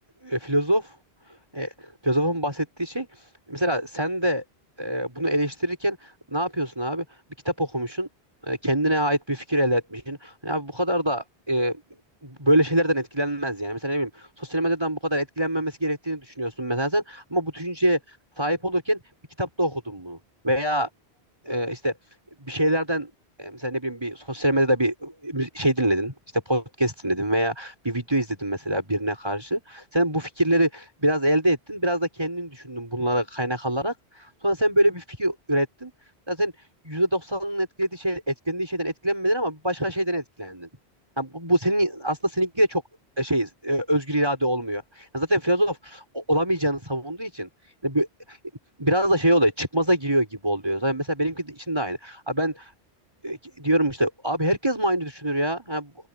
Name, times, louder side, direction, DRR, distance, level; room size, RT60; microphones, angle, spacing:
voice 1, 0.2-0.9 1.5-1.7 2.0-3.1 3.5-4.4 4.8-7.0 7.4-8.1 8.4-11.8 12.2-18.0 18.4-19.0 19.4-20.2 20.4-20.9 21.4-21.9 22.4-23.1 23.4-35.9 36.3-36.5 36.8-40.7 41.2-42.8 43.2-47.5 47.8-48.4 48.8-52.7 53.2-55.9, right 1 dB, 25° right, 6.2 m, -25 dB
open air
omnidirectional pair, 1.1 m